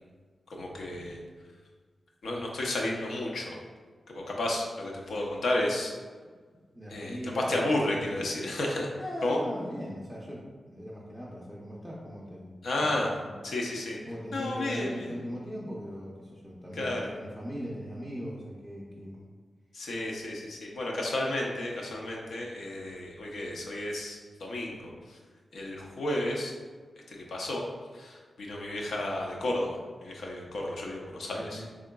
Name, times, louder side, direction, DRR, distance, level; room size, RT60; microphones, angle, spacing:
voice 1, 0.5-1.2 2.2-3.6 4.1-5.9 6.9-8.9 9.2-9.4 12.6-13.1 13.4-14.0 14.3-15.1 16.8-17.1 19.7-25.2 25.5-26.5 27.1-27.6 27.9-31.6, left 1 dB, 80° left, -1 dB, 0.6 m, -32 dB
voice 2, 6.7-8.0 9.0-12.6 13.2-13.3 14.1-19.3 31.3-31.7, equal, 5° left, -6 dB, 0.5 m, -39 dB
3.8 x 3.6 x 2.2 m, 1.5 s
wide cardioid pair, 165°, 0 cm